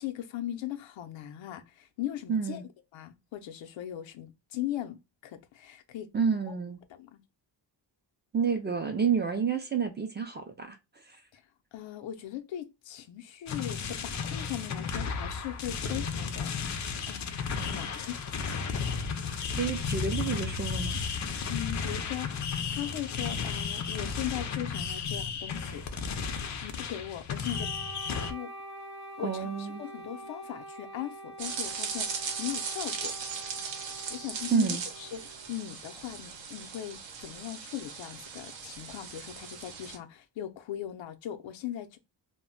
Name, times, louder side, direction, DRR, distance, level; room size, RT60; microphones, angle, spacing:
voice 1, 0.0-2.6 2.9-5.0 5.2-6.1 6.5-6.6 6.9-7.2 11.3-11.4 11.7-18.1 21.5-22.4 22.7-25.9 26.6-27.7 28.3-28.5 29.2-33.1 34.1-42.0, left 12 dB, 85° left, 0.6 m, -39 dB
voice 2, 2.3-2.6 6.1-6.8 8.3-10.8 11.1-11.2 17.6-17.9 19.6-21.0 29.2-29.8 34.5-34.8, right 6 dB, 25° right, 0.3 m, -29 dB
Fireworks in Silo, 13.5-28.3, left 5 dB, 40° left, 0.4 m, -33 dB
Wind instrument woodwind instrument, 27.5-35.6, right 1 dB, 50° right, 0.8 m, -46 dB
sound 1, 31.4-40.0, right 6 dB, 75° right, 0.7 m, -38 dB
2.2 x 2.0 x 3.7 m
wide cardioid pair, 125°, 44 cm